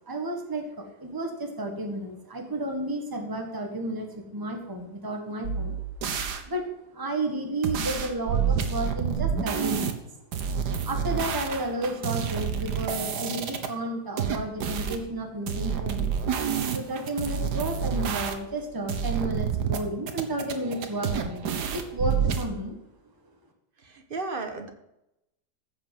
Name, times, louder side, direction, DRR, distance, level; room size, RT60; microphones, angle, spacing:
voice 1, 0.0-5.8 6.4-6.6 6.9-10.1 10.8-16.1 16.7-21.5 21.7-22.8, right 1 dB, 10° right, 3 dB, 1.7 m, -32 dB
sound 1, 5.4-6.4 7.6-9.9 10.3-13.7 14.2-15.0 15.5-18.6 18.9-19.8 20.1-22.5, right 7 dB, 70° right, 1.7 m, -28 dB
voice 2, 23.8-24.7, right 3 dB, 35° right, 5 dB, 1.5 m, -34 dB
14.5 x 6.1 x 7.7 m, 0.85 s
omnidirectional pair, 1.8 m